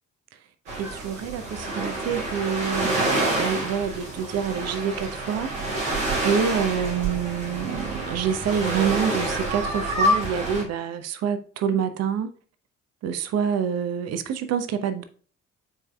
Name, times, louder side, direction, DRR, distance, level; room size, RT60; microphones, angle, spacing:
sound 1, 0.7-10.6, right 1 dB, 75° right, 2.7 m, -27 dB
voice 1, 0.8-5.5 6.2-12.3 13.0-15.0, right 7 dB, 40° right, 0.7 m, -27 dB
9.4 x 4.7 x 2.3 m
figure-of-eight pair, 45°, 38 cm